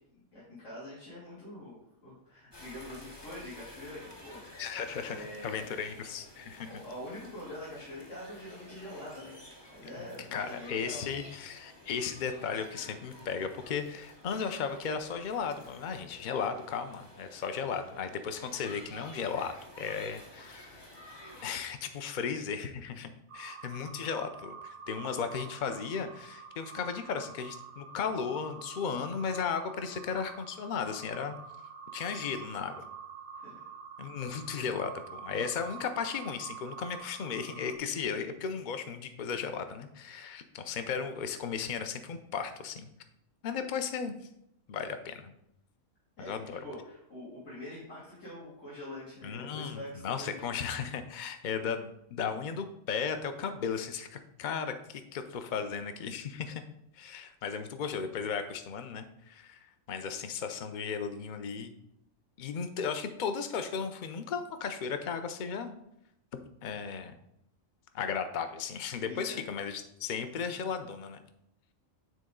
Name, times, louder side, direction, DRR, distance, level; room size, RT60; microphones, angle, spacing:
voice 1, 0.3-4.6 5.0-5.8 6.6-9.5 9.7-11.0 33.3-33.6 46.2-50.5 69.0-69.4, left 1 dB, 65° left, -9 dB, 2.9 m, -45 dB
sound 1, 2.5-21.6, left 1 dB, 20° left, 0.9 m, -52 dB
voice 2, 4.6-6.7 10.3-20.8 21.4-31.3 31.9-32.9 34.0-42.9 43.4-44.1 44.7-45.3 46.2-46.6 49.2-56.6 56.9-59.6 59.9-61.7 62.4-65.7 66.6-67.1 67.9-71.2, left 6 dB, 45° left, 8 dB, 0.6 m, -35 dB
sound 2, 23.3-37.8, right 6 dB, 55° right, 0.6 m, -47 dB
9.3 x 4.1 x 3.7 m, 0.79 s
omnidirectional pair, 1.4 m